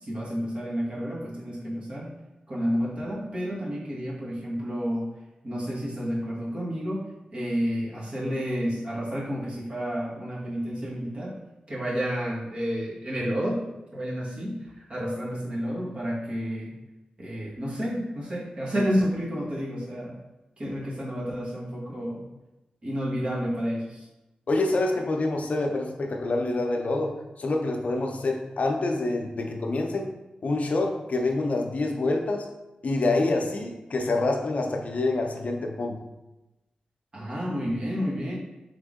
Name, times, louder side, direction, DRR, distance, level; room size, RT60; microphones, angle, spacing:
voice 1, 0.0-2.1 2.5-5.1 5.4-7.0 7.3-11.3 11.7-13.6 13.9-14.6 14.9-16.7 17.2-20.2 20.6-22.2 22.8-24.0 37.1-38.3, equal, 45° right, -5 dB, 1.5 m, -30 dB
voice 2, 24.5-30.1 30.4-32.5 32.8-36.0, left 2 dB, 60° left, 3 dB, 0.6 m, -26 dB
3.7 x 3.5 x 3.7 m, 1.0 s
cardioid pair, 55°, 3 cm